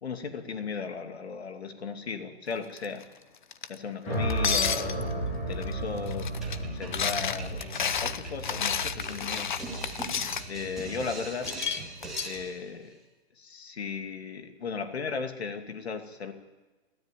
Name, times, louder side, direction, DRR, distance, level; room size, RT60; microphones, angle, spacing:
voice 1, 0.0-3.0 3.7-9.5 10.5-11.5 12.2-13.0 13.4-16.3, left 5 dB, 75° left, 6 dB, 2.6 m, -36 dB
sound 1, 2.8-3.0 3.5-3.7 4.3-5.1 5.6-5.7 6.0-6.6 6.9-10.4 11.4-12.4, left 7 dB, 50° left, 0.9 m, -30 dB
sound 2, 4.0-12.3, right 1 dB, 20° left, 7.8 m, -35 dB
sound 3, 6.4-12.7, right 3 dB, ahead, 2.0 m, -42 dB
27.5 x 13.0 x 9.2 m, 1.2 s
hypercardioid pair, 180°, 32 cm